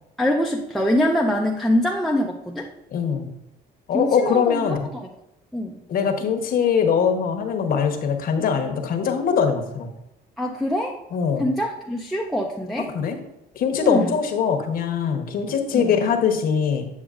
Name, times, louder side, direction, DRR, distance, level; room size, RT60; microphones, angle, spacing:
voice 1, 0.2-2.7 3.9-5.1 5.5-5.8 10.4-11.0 11.4-12.9 13.8-14.1 15.7-15.9, left 1 dB, ahead, -1 dB, 0.5 m, -24 dB
voice 2, 2.9-3.3 3.9-4.9 5.9-9.9 11.1-11.5 12.8-13.2 13.5-16.9, left 6 dB, 60° left, 5 dB, 1.0 m, -22 dB
8.3 x 6.1 x 2.5 m, 0.90 s
cardioid pair, 110°, 17 cm